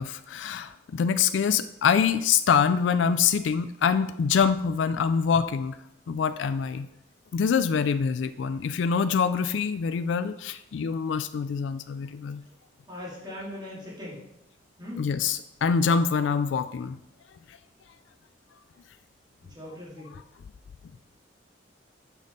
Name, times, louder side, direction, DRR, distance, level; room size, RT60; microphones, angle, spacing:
voice 1, 0.0-5.8 6.1-6.9 7.3-12.4 15.0-17.0 17.5-17.6, left 6 dB, 75° left, 12 dB, 0.3 m, -25 dB
voice 2, 12.9-14.2 14.8-15.0 19.4-20.1, left 1 dB, 25° right, -6 dB, 2.8 m, -40 dB
6.4 x 5.3 x 5.3 m, 0.83 s
head